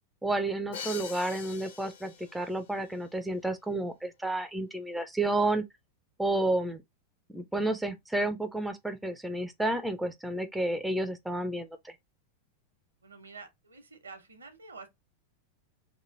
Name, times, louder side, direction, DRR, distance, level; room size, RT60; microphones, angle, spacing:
voice 1, 0.2-5.6 6.2-6.8 7.3-12.0, right 2 dB, 5° right, 0.4 m, -31 dB
Crash cymbal, 0.7-2.6, left 7 dB, 60° left, 0.8 m, -43 dB
voice 2, 13.0-14.9, right 4 dB, 75° right, 0.9 m, -48 dB
3.0 x 2.5 x 3.8 m
figure-of-eight pair, 90°, 0 cm